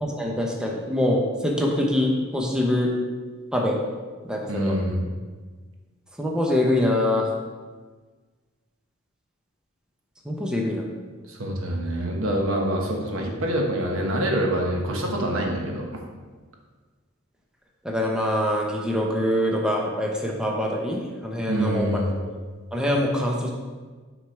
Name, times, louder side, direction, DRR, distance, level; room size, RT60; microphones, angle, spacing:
voice 1, 0.0-2.9 3.5-3.8 4.2-4.7 6.2-7.3 10.3-10.9 17.8-21.9 22.7-23.5, left 1 dB, 5° right, -1 dB, 0.7 m, -24 dB
voice 2, 4.5-5.1 11.3-15.8 21.5-22.2, right 1 dB, 70° right, 1 dB, 1.1 m, -25 dB
6.3 x 5.0 x 4.4 m, 1.4 s
head